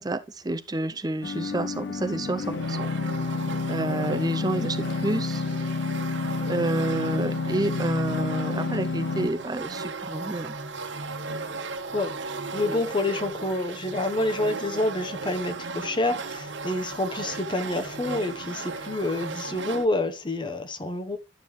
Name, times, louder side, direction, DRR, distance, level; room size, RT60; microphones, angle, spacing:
voice 1, 0.0-3.2 3.7-5.4 6.5-10.5, right 2 dB, 20° right, 0.6 m, -29 dB
sound 1, 1.2-9.3, left 4 dB, 60° left, 0.5 m, -29 dB
sound 2, 2.5-19.9, right 3 dB, 70° right, 1.2 m, -36 dB
voice 2, 12.5-21.2, left 2 dB, 25° left, 1.0 m, -28 dB
11.5 x 7.4 x 3.2 m
head